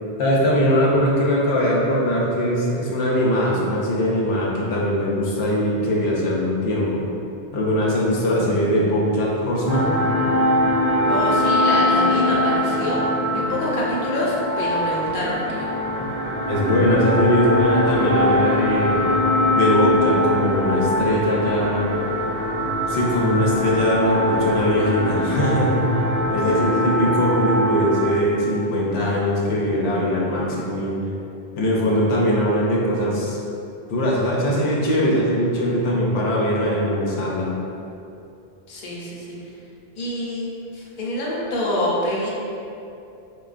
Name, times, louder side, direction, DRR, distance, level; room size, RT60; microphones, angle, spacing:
voice 1, 0.2-7.0 7.5-9.9 16.0-16.1 16.4-19.0 19.5-21.9 22.9-25.8 26.3-30.9 31.6-33.4 33.9-37.5, equal, 85° left, -4 dB, 0.8 m, -21 dB
sound 1, 9.7-28.1, left 1 dB, 80° right, 1.0 m, -22 dB
voice 2, 11.1-13.0 13.3-15.7 26.6-26.7 38.7-39.4 40.0-40.5 40.7-42.3, left 1 dB, 50° left, -6 dB, 0.7 m, -26 dB
4.5 x 2.2 x 2.4 m, 2.7 s
omnidirectional pair, 1.1 m